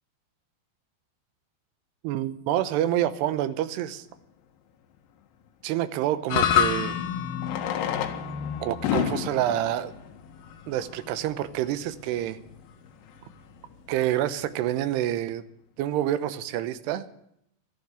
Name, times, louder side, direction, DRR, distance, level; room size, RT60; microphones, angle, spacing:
voice 1, 2.0-4.1 5.6-7.0 8.6-9.9 10.7-12.4 13.9-15.4 15.8-17.1, right 12 dB, 75° right, 12 dB, 2.8 m, -27 dB
Fireworks, 3.8-3.9 6.2-6.3 7.3-11.1 11.9-12.0 12.2-12.3 12.5-12.6 13.1-13.3, left 9 dB, 85° left, 3.8 m, -32 dB
sound 1, 6.3-14.7, left 9 dB, 65° left, 2.5 m, -31 dB
13.5 x 12.0 x 8.1 m, 0.75 s
omnidirectional pair, 5.3 m